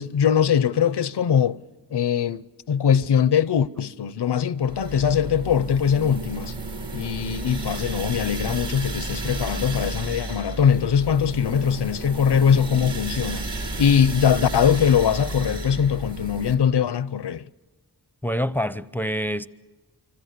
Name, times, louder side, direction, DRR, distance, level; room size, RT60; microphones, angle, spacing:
voice 1, 0.0-1.6 1.9-6.6 6.9-17.5, left 8 dB, 80° left, 0.8 m, -21 dB
sound 1, 4.6-16.5, right 2 dB, 80° right, 4.5 m, -32 dB
voice 2, 18.2-19.5, equal, 5° left, 0.7 m, -26 dB
26.0 x 25.5 x 6.8 m
wide cardioid pair, 80°, 40 cm